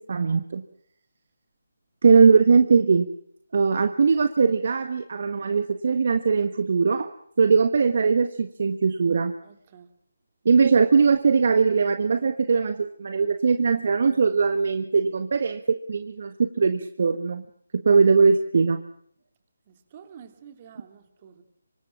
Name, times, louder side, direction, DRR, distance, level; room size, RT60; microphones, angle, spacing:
voice 1, 0.1-0.6 2.0-3.1 3.5-7.1 7.4-9.3 10.4-17.4 17.7-18.8, right 5 dB, 50° right, 10 dB, 1.4 m, -20 dB
voice 2, 9.4-9.9 19.7-21.4, right 8 dB, 30° right, 8 dB, 3.1 m, -49 dB
25.5 x 23.5 x 6.0 m, 0.66 s
figure-of-eight pair, 155°, 0 cm